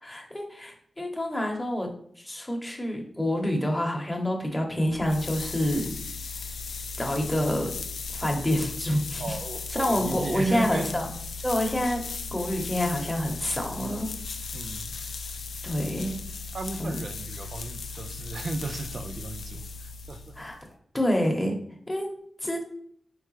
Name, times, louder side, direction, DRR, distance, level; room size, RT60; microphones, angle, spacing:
voice 1, 0.0-1.9 2.2-5.9 7.0-7.7 8.1-9.4 9.7-11.1 11.4-12.0 12.3-14.1 15.6-16.1 16.8-17.0 20.4-20.6 20.9-21.6 21.9-22.1 22.4-22.6, equal, 10° left, 1 dB, 1.0 m, -27 dB
sound 1, 4.8-20.6, left 4 dB, 85° left, 0.3 m, -37 dB
voice 2, 9.2-10.9 14.5-14.9 16.5-20.3, right 2 dB, 60° right, 8 dB, 0.4 m, -35 dB
4.7 x 3.2 x 3.1 m, 0.64 s
wide cardioid pair, 90°, 0 cm